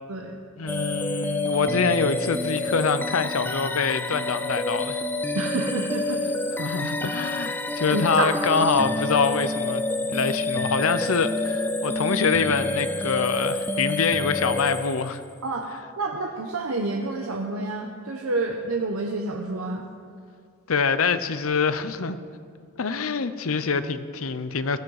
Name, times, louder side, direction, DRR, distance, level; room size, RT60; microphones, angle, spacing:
voice 1, 0.6-5.0 6.6-15.2 20.7-22.2 22.8-24.8, left 5 dB, 85° left, 12 dB, 0.7 m, -25 dB
sound 1, 0.7-15.4, left 2 dB, 10° left, 0.4 m, -28 dB
voice 2, 5.3-6.2 6.6-6.8 7.9-8.7 15.4-15.7 16.0-19.9, right 2 dB, 85° right, 1 dB, 1.0 m, -28 dB
16.0 x 13.5 x 4.9 m, 2.3 s
head